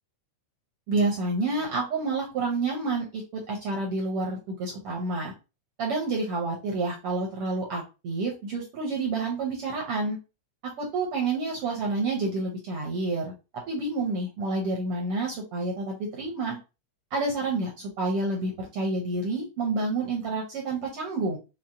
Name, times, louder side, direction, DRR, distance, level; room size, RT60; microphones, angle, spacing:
voice 1, 0.9-5.3 5.8-10.2 10.8-13.3 13.7-16.6 17.1-21.4, right 3 dB, 70° right, -1 dB, 1.3 m, -29 dB
5.8 x 2.1 x 3.7 m, 0.29 s
omnidirectional pair, 3.7 m